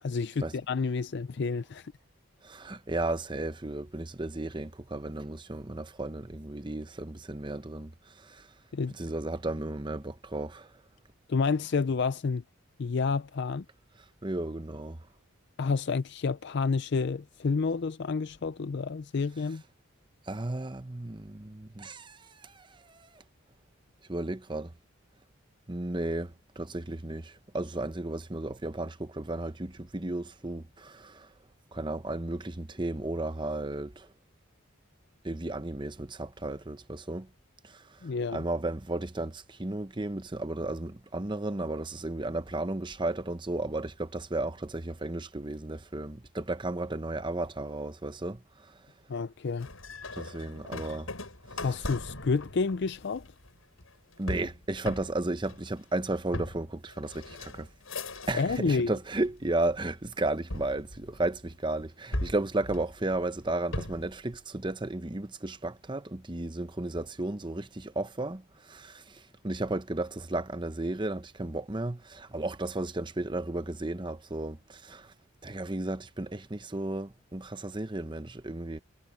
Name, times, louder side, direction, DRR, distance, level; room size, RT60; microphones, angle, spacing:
voice 1, 0.0-1.9 8.7-8.9 11.3-12.4 12.8-13.6 15.6-19.6 38.0-38.4 49.1-49.7 51.6-53.3 58.3-58.9, left 4 dB, 55° left, 0.4 m, -29 dB
voice 2, 2.4-7.9 8.2-8.4 9.0-10.7 14.2-15.0 20.3-22.5 22.9-23.1 24.1-24.7 25.7-31.3 31.7-34.1 35.2-37.3 37.6-37.8 38.3-48.4 50.1-51.1 54.2-57.7 58.3-75.1 75.4-78.8, right 2 dB, 20° right, 0.8 m, -34 dB
sound 1, 49.6-58.8 59.1-59.8 60.5-61.6 62.1-64.2, left 1 dB, 80° left, 7.0 m, -39 dB
head